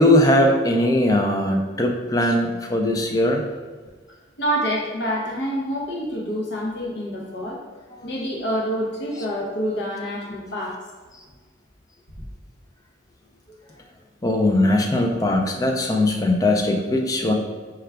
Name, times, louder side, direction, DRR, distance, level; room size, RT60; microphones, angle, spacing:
voice 1, 0.0-3.4 14.2-17.3, left 1 dB, 15° left, 2 dB, 0.3 m, -19 dB
voice 2, 4.4-7.6 8.0-10.8, equal, 55° left, -2 dB, 0.7 m, -27 dB
4.6 x 2.3 x 3.3 m, 1.4 s
head